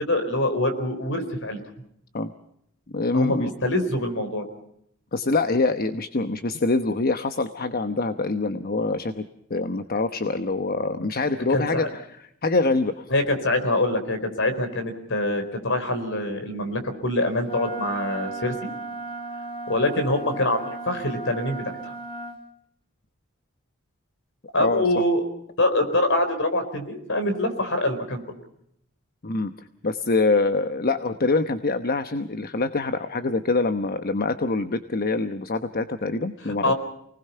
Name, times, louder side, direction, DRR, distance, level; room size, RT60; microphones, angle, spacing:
voice 1, 0.0-1.6 3.1-4.4 11.5-11.9 13.1-18.5 19.7-21.9 24.5-25.2 25.6-28.2 36.6-36.7, left 1 dB, 65° left, 8 dB, 4.4 m, -24 dB
voice 2, 2.9-3.5 5.1-9.2 9.5-12.0 12.4-13.1 24.6-24.8 29.2-29.5 29.8-36.7, left 3 dB, 45° left, 10 dB, 1.0 m, -25 dB
Wind instrument woodwind instrument, 17.4-22.4, right 2 dB, 25° left, 2.0 m, -35 dB
29.0 x 19.5 x 5.7 m, 0.74 s
head